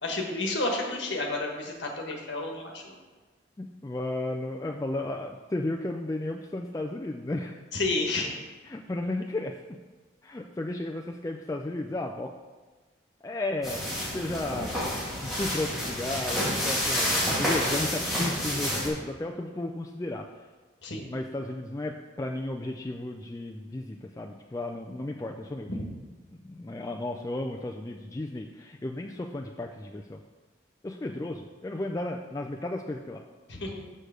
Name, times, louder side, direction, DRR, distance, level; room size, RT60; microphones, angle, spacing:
voice 1, 0.0-2.9 7.7-8.3 20.8-21.1 25.7-25.8 33.5-33.8, left 2 dB, 65° left, 1 dB, 1.4 m, -31 dB
voice 2, 3.6-7.6 8.7-9.8 10.2-12.3 13.2-20.3 21.1-25.7 26.4-30.2 30.8-33.2, left 2 dB, 15° left, 1 dB, 0.3 m, -34 dB
sound 1, 13.6-18.9, equal, ahead, 1.9 m, -29 dB
6.5 x 6.4 x 5.0 m, 1.3 s
head